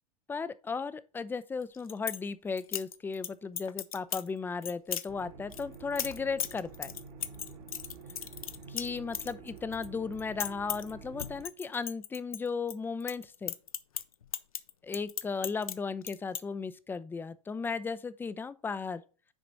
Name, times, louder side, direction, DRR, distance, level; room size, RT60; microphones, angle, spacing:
voice 1, 0.3-6.9 8.7-13.5 14.8-19.0, left 5 dB, 10° left, 0.5 m, -36 dB
sound 1, 1.6-2.2 2.6-3.3 3.6-4.3 4.6-5.1 5.5-9.9 10.1-10.9 11.2-12.7 13.0-15.8 16.0-16.4, left 9 dB, 80° left, 0.6 m, -36 dB
sound 2, 5.1-11.4, right 4 dB, 55° right, 1.6 m, -48 dB
6.2 x 5.0 x 4.5 m
hypercardioid pair, 90°, 18 cm